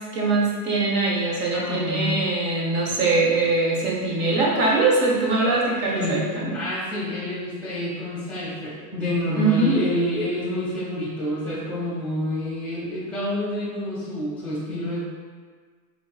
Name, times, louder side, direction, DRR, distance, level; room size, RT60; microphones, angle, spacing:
voice 1, 0.1-6.5 9.3-9.7, right 3 dB, 25° right, -3 dB, 0.7 m, -22 dB
voice 2, 1.5-2.2 5.9-6.2 6.5-15.1, left 1 dB, ahead, -9 dB, 1.3 m, -28 dB
4.5 x 3.6 x 2.3 m, 1.6 s
supercardioid pair, 145°, 50 cm